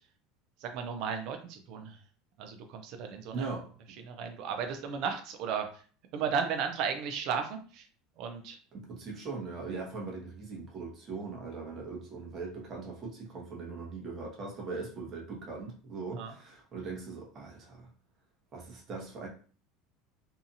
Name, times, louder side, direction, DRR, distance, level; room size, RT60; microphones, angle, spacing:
voice 1, 0.6-2.0 2.4-3.5 4.0-5.7 6.1-7.9 8.2-8.6 16.1-16.3, right 6 dB, 55° right, 5 dB, 0.4 m, -34 dB
voice 2, 3.3-3.7 8.7-17.9 18.5-19.3, right 4 dB, 35° right, -1 dB, 1.0 m, -40 dB
2.7 x 2.4 x 2.6 m, 0.41 s
supercardioid pair, 135°, 0 cm